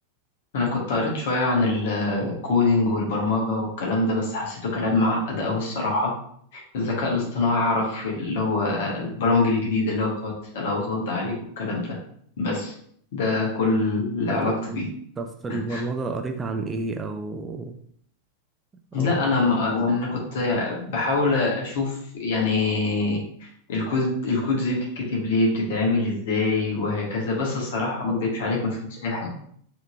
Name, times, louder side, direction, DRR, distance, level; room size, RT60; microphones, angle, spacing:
voice 1, 0.5-6.1 6.5-12.0 12.4-12.7 13.1-14.9 15.7-15.8 18.9-29.3, left 3 dB, 55° left, -1 dB, 1.2 m, -24 dB
voice 2, 14.3-14.8 15.2-17.7 18.7-19.2, right 3 dB, 15° right, 5 dB, 0.4 m, -31 dB
4.2 x 2.9 x 2.5 m, 0.63 s
figure-of-eight pair, 90°, 0 cm